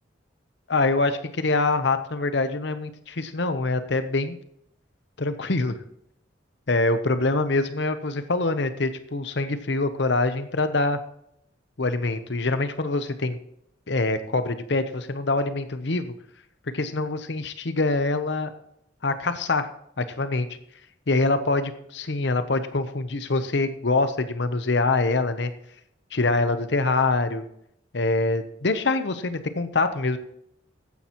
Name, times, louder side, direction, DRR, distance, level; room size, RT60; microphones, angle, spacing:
voice 1, 0.7-4.4 5.2-5.8 6.7-11.0 11.8-13.4 13.9-16.1 16.7-18.5 19.0-19.7 20.0-20.5 21.1-25.5 26.1-27.4 27.9-30.2, left 3 dB, 65° left, 10 dB, 0.8 m, -24 dB
14.5 x 10.0 x 3.0 m, 0.72 s
head